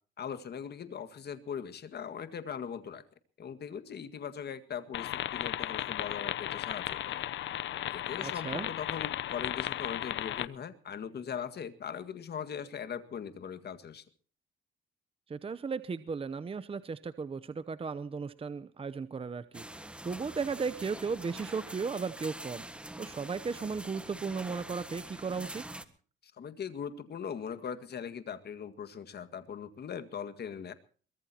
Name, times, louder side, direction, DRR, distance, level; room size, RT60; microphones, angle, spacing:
voice 1, 0.2-3.0 3.4-7.2 7.9-14.0 26.2-30.7, left 7 dB, 55° left, 10 dB, 1.9 m, -40 dB
sound 1, 4.9-10.5, left 13 dB, 70° left, 0.7 m, -35 dB
voice 2, 8.2-8.7 15.3-25.6, right 5 dB, 30° right, 13 dB, 0.8 m, -36 dB
sound 2, 19.5-25.9, right 1 dB, 5° right, 1.6 m, -45 dB
23.0 x 20.0 x 2.9 m, 0.41 s
cardioid pair, 90°, 20 cm